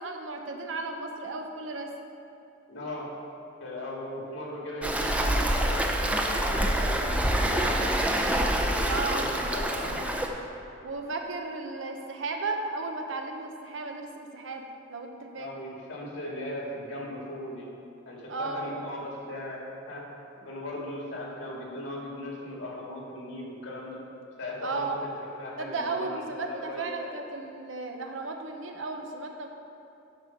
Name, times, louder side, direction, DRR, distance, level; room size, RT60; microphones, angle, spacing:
voice 1, 0.0-1.9 8.9-9.3 10.8-15.5 18.3-18.7 24.6-25.0 25.6-29.5, right 3 dB, 85° right, 4 dB, 0.9 m, -34 dB
voice 2, 2.7-3.1 3.6-8.0 8.6-10.1 15.4-17.7 18.1-19.6 19.9-20.0 20.4-24.0 24.4-27.1, left 1 dB, 75° left, -3 dB, 2.0 m, -38 dB
Waves surf, 4.8-10.3, right 1 dB, 5° right, 0.6 m, -26 dB
11.0 x 4.8 x 5.8 m, 2.7 s
head